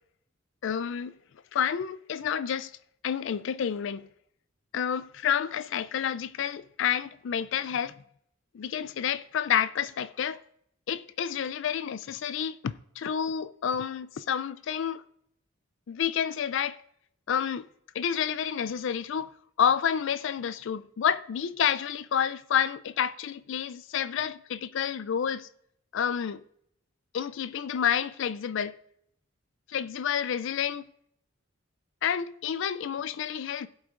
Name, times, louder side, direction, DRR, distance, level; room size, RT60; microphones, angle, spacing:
voice 1, 0.6-1.1 1.5-2.7 3.0-4.1 4.7-7.9 8.5-10.4 10.9-15.0 15.9-16.8 17.3-17.7 17.9-19.3 19.6-25.5 25.9-26.4 27.1-28.7 29.7-30.9 32.0-33.7, left 8 dB, 65° left, 0.4 m, -29 dB
17.0 x 8.0 x 2.5 m
head